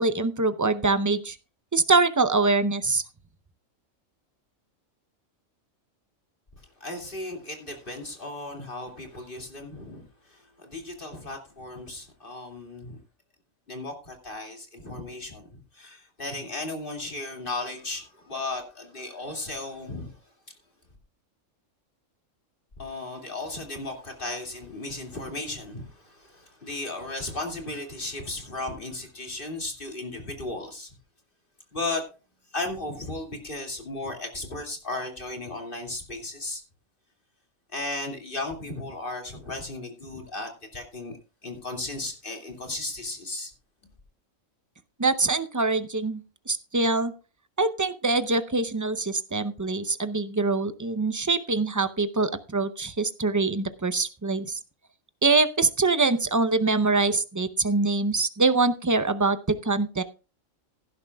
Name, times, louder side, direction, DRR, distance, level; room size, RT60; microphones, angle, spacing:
voice 1, 0.0-1.4 1.7-3.0 45.0-47.1 47.6-54.6 55.2-60.0, right 3 dB, 25° right, 11 dB, 0.4 m, -24 dB
voice 2, 6.8-10.0 10.3-13.0 13.7-20.1 22.8-30.9 31.7-32.0 32.5-36.6 37.7-41.2 41.4-43.5, left 2 dB, 40° left, 2 dB, 2.6 m, -35 dB
16.5 x 11.0 x 2.3 m, 0.33 s
omnidirectional pair, 1.3 m